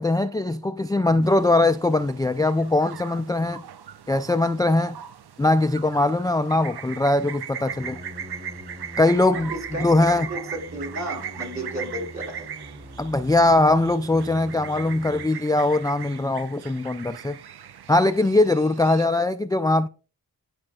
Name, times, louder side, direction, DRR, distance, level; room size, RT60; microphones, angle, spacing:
voice 1, 0.0-3.6 4.1-5.0 5.4-8.0 9.0-9.5 9.8-10.3 13.0-17.4 17.9-19.9, left 2 dB, 10° left, 0.3 m, -21 dB
sound 1, 1.2-19.1, right 8 dB, 90° right, 0.6 m, -39 dB
sound 2, 7.6-15.3, equal, 30° right, 2.8 m, -43 dB
voice 2, 9.3-9.9 10.3-12.5, right 1 dB, 45° right, 4.1 m, -33 dB
12.0 x 5.2 x 2.3 m
wide cardioid pair, 55°, 38 cm